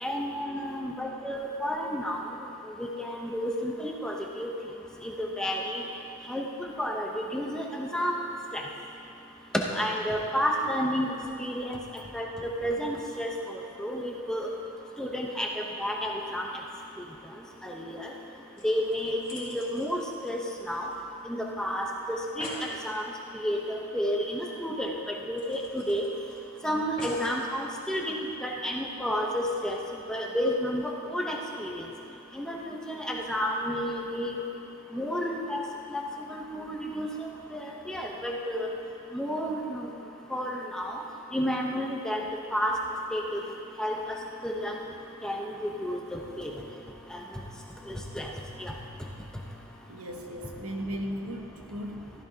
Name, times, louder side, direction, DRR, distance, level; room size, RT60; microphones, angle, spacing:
voice 1, 0.0-2.2 2.8-4.5 5.2-5.8 6.3-6.5 6.8-8.2 9.8-11.1 11.4-11.8 12.1-12.3 12.6-13.3 13.8-14.5 15.0-15.5 15.8-16.4 17.6-18.1 18.6-20.4 20.7-20.8 21.3-21.9 22.4-22.5 22.8-23.0 23.4-24.9 25.3-26.0 26.6-28.1 28.4-29.8 30.1-31.8 32.4-34.4 34.9-35.6 36.3-37.1 37.5-37.6 37.9-38.7 39.1-39.6 40.3-40.9 41.3-42.2 42.5-42.7 43.1-43.4 43.8-44.0 44.4-44.8 45.2-46.5 48.2-48.3 48.6-48.7, equal, 5° left, -1 dB, 0.8 m, -30 dB
sound 1, 18.6-21.2 21.5-21.6 21.9-22.0 22.2-22.7 24.2-24.3 24.6-24.7 25.4-26.4 27.0-27.4 28.1-28.2, left 1 dB, 25° left, 2.5 m, -44 dB
voice 2, 49.9-52.1, equal, 85° right, 1 dB, 1.2 m, -36 dB
14.5 x 14.5 x 2.8 m, 2.7 s
head